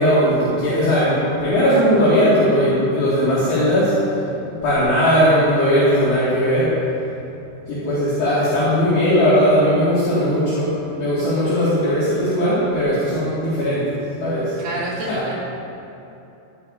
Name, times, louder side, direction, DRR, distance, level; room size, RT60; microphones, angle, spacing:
voice 1, 0.0-4.0 4.6-6.7 7.7-10.7 11.0-13.9 14.2-14.6 15.0-15.2, equal, 60° left, -10 dB, 4.0 m, -18 dB
voice 2, 14.6-15.3, right 1 dB, 55° right, -7 dB, 4.4 m, -28 dB
17.0 x 14.5 x 2.8 m, 2.8 s
omnidirectional pair, 5.9 m